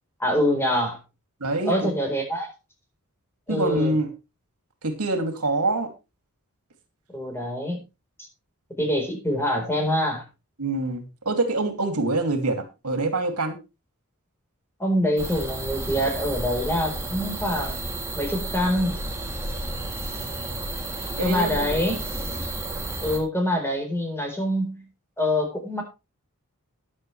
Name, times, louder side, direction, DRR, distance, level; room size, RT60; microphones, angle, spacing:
voice 1, 0.2-1.0 1.7-2.5 3.5-3.9 7.1-7.8 8.8-10.2 14.8-17.8 18.1-18.9 21.2-22.0 23.0-24.9 25.2-25.8, equal, 10° left, 3 dB, 4.3 m, -25 dB
voice 2, 1.4-1.9 3.5-4.1 4.8-5.9 10.6-13.6 21.2-21.8, right 2 dB, 80° right, 6 dB, 2.7 m, -25 dB
sound 1, 15.2-23.2, right 2 dB, 15° right, 2.9 m, -32 dB
13.5 x 11.0 x 3.3 m, 0.28 s
head